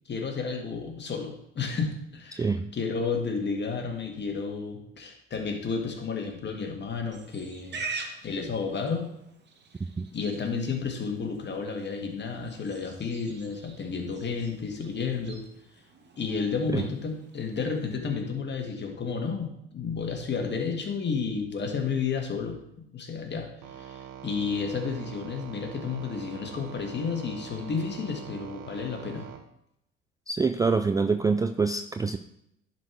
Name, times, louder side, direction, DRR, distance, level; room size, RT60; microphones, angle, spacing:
voice 1, 0.1-7.8 8.2-9.1 10.1-15.4 16.2-22.6 22.9-29.3, left 5 dB, 35° left, 3 dB, 1.8 m, -32 dB
voice 2, 2.3-2.7 10.0-10.1 16.7-16.8 30.3-32.2, right 4 dB, 10° right, 8 dB, 0.4 m, -25 dB
Livestock farm animals working animals, 7.1-18.0, right 4 dB, 35° right, 1.4 m, -45 dB
sound 1, 23.6-29.4, right 10 dB, 60° right, 1.3 m, -44 dB
11.0 x 4.5 x 4.6 m, 0.78 s
hypercardioid pair, 65°, 30 cm